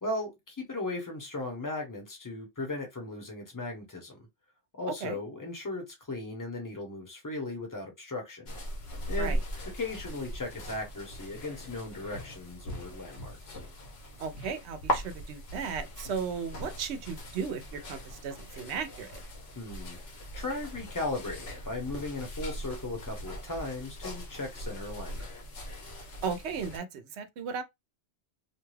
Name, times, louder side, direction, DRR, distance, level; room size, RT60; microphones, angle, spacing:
voice 1, 0.0-4.3 4.8-8.6 9.1-9.4 9.7-13.6 19.6-20.0 20.3-25.3, left 2 dB, 20° left, 0.8 m, -37 dB
sound 1, 8.5-26.8, equal, 70° left, 1.1 m, -39 dB
voice 2, 14.2-19.2 26.2-27.6, right 6 dB, 80° right, 0.9 m, -35 dB
2.6 x 2.3 x 3.1 m
omnidirectional pair, 1.1 m